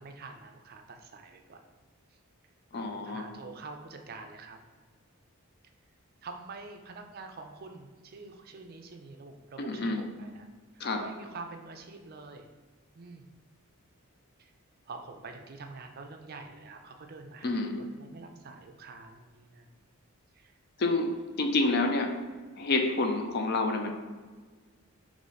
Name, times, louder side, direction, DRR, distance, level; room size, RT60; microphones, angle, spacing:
voice 1, 0.0-1.6 2.7-4.6 6.2-10.5 11.0-12.5 13.0-13.3 14.4-14.5 14.9-19.7 20.4-20.5, right 3 dB, 45° right, 5 dB, 0.4 m, -46 dB
voice 2, 2.7-3.3 9.6-10.0 10.8-11.0 17.4-17.9 20.8-21.1 21.4-22.1 22.6-23.9, left 2 dB, 45° left, 4 dB, 0.5 m, -28 dB
3.8 x 3.1 x 4.0 m, 1.4 s
head